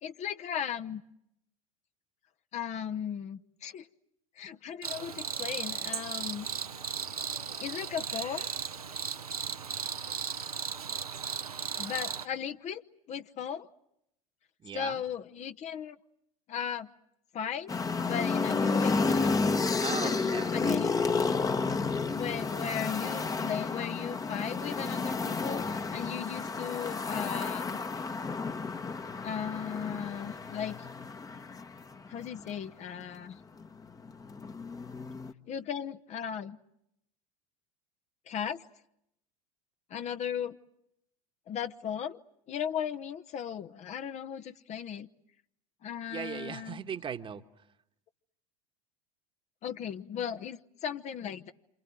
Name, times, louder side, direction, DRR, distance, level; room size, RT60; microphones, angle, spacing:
voice 1, 0.0-1.0 2.5-3.9 4.4-6.5 7.6-8.5 11.8-12.8 13.1-13.7 14.7-16.0 16.5-16.9 17.3-17.7 18.1-19.3 19.9-20.1 20.5-21.0 22.1-27.8 29.2-30.9 32.1-33.4 35.5-36.6 38.3-38.6 39.9-40.6 41.5-42.2 42.5-45.1 45.8-46.8 49.6-51.5, left 8 dB, 40° left, 8 dB, 1.0 m, -36 dB
Cricket, 4.8-12.2, right 6 dB, 85° right, 1.2 m, -36 dB
voice 2, 14.6-15.0 19.8-20.8 46.1-47.4, right 7 dB, 25° right, 8 dB, 1.4 m, -38 dB
sound 1, 17.7-32.5 33.6-35.3, left 4 dB, 20° left, 1.2 m, -31 dB
28.0 x 27.5 x 7.6 m, 0.78 s
figure-of-eight pair, 75°, 19 cm